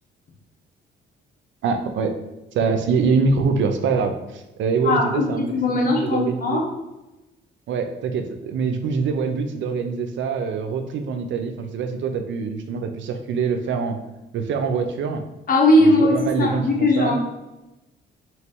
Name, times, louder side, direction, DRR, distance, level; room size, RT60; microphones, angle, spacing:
voice 1, 1.6-2.1 2.5-5.5 5.8-6.6 7.7-14.0 14.3-15.2 15.8-17.1, right 5 dB, 70° right, 6 dB, 0.6 m, -24 dB
voice 2, 4.8-6.7 15.5-17.2, left 1 dB, 45° left, -1 dB, 1.2 m, -19 dB
3.2 x 3.1 x 4.4 m, 0.99 s
cardioid pair, 90°, 20 cm